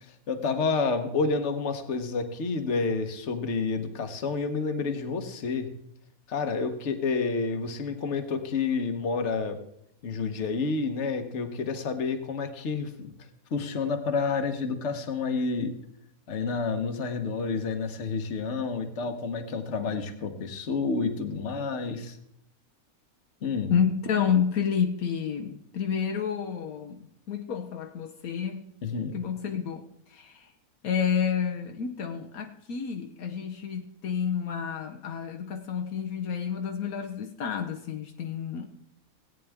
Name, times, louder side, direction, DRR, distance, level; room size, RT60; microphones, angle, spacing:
voice 1, 0.3-5.7 6.3-9.6 10.0-13.1 13.5-15.8 16.3-22.2 23.4-23.7 28.8-29.2, left 4 dB, 55° left, 1.3 m, -29 dB
voice 2, 23.7-28.7 29.1-30.5 30.8-38.7, left 7 dB, 75° left, 1.3 m, -30 dB
17.5 x 9.2 x 3.5 m
omnidirectional pair, 1.5 m